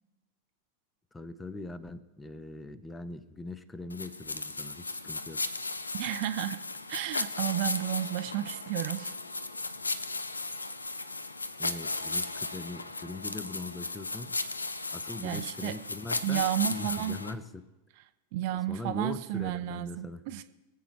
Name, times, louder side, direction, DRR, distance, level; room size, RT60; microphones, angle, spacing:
voice 1, 1.1-5.4 11.6-14.4 14.9-17.7 18.7-20.2, left 3 dB, 10° left, 15 dB, 0.7 m, -41 dB
sound 1, 3.9-17.3, left 3 dB, 80° left, 0.5 m, -36 dB
voice 2, 5.9-6.6 6.9-9.2 15.2-15.8 16.2-17.2 18.0-18.1 18.3-20.4, right 13 dB, 50° right, 11 dB, 0.5 m, -32 dB
23.0 x 8.0 x 3.3 m, 1.1 s
figure-of-eight pair, 90°, 0 cm